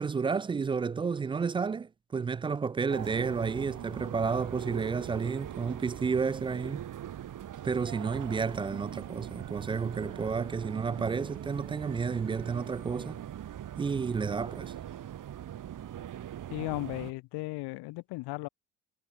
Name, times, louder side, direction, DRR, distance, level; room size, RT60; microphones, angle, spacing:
voice 1, 0.0-6.9 7.6-13.2 13.8-14.7, right 5 dB, 15° right, 0.3 m, -31 dB
sound 1, 2.9-17.1, right 11 dB, 45° right, 2.6 m, -41 dB
voice 2, 16.5-18.5, left 23 dB, 60° left, 2.7 m, -36 dB
figure-of-eight pair, 50°, 44 cm